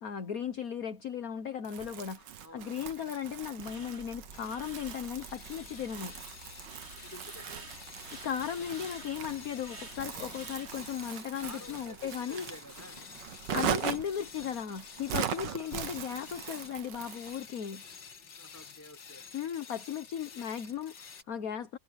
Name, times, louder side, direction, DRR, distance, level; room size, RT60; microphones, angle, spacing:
voice 1, 0.0-6.1 7.9-12.5 13.5-17.8 19.3-21.8, left 8 dB, 55° left, 1.5 m, -36 dB
Crumpling crinkling, 1.6-17.4, right 9 dB, 70° right, 1.7 m, -40 dB
voice 2, 2.4-2.9 7.0-7.7 11.4-13.0 15.4-15.7 18.1-19.2, left 1 dB, 10° left, 5.9 m, -51 dB
sound 1, 3.6-11.1, right 3 dB, 35° right, 2.6 m, -50 dB
sound 2, 4.3-21.2, left 6 dB, 70° left, 2.5 m, -50 dB
omnidirectional pair, 2.0 m